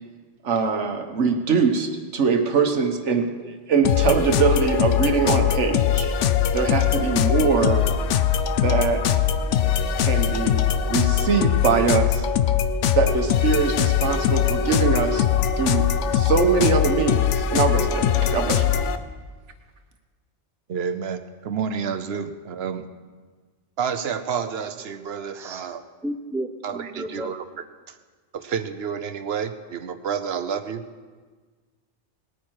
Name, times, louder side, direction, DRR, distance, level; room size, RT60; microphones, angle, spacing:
voice 1, 0.4-6.1 6.5-7.9 8.6-9.0 10.0-10.6 10.9-12.3 12.9-15.3 15.6-15.8 16.1-18.7, right 5 dB, 80° right, 6 dB, 1.5 m, -22 dB
sound 1, 3.8-19.0, left 9 dB, 85° left, 1.0 m, -21 dB
voice 2, 20.7-22.8 23.8-25.8 26.6-27.4 28.3-30.8, right 7 dB, 65° right, 10 dB, 1.0 m, -29 dB
voice 3, 25.3-25.7 26.0-27.3, right 1 dB, 5° right, 6 dB, 0.5 m, -33 dB
19.5 x 9.2 x 4.7 m, 1.4 s
omnidirectional pair, 1.2 m